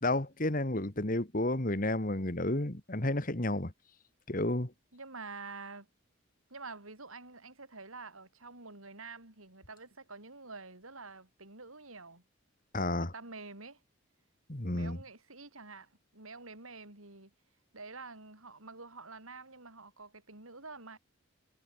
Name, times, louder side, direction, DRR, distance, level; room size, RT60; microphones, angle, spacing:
voice 1, 0.0-3.7 4.3-4.7 12.7-13.1 14.5-15.0, left 1 dB, 40° left, 2.0 m, -31 dB
voice 2, 4.9-5.9 6.5-12.2 12.8-13.8 14.7-17.3 17.7-21.0, right 3 dB, 90° right, 7.3 m, -48 dB
head